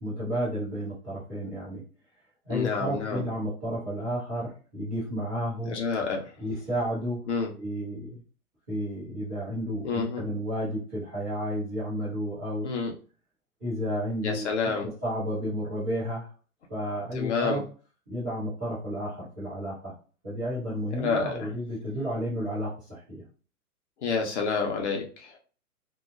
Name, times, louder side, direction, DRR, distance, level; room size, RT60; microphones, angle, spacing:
voice 1, 0.0-1.8 2.4-5.8 6.4-7.2 7.6-8.2 8.7-12.7 13.6-14.5 14.8-16.2 16.7-17.6 18.1-19.9 20.2-23.2, equal, 5° right, -17 dB, 0.4 m, -32 dB
voice 2, 2.5-3.2 5.6-6.3 7.3-7.5 9.8-10.2 12.6-12.9 14.2-14.9 17.1-17.6 21.0-21.5 24.0-25.4, left 5 dB, 50° left, 1 dB, 0.8 m, -29 dB
2.9 x 2.0 x 2.3 m, 0.38 s
figure-of-eight pair, 120°, 45 cm